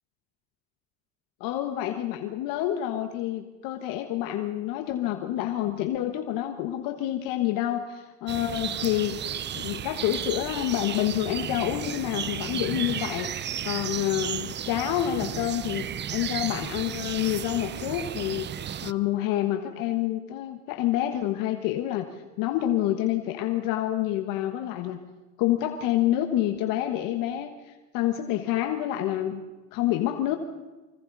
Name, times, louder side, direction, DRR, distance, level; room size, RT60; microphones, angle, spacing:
voice 1, 1.4-9.2 9.5-18.5 18.8-22.0 22.4-25.0 25.4-29.4 29.7-30.4, left 13 dB, 70° left, 6 dB, 1.5 m, -28 dB
sound 1, 8.3-18.9, right 10 dB, 30° right, 0.6 m, -34 dB
25.0 x 24.5 x 4.1 m, 1.2 s
supercardioid pair, 95°, 34 cm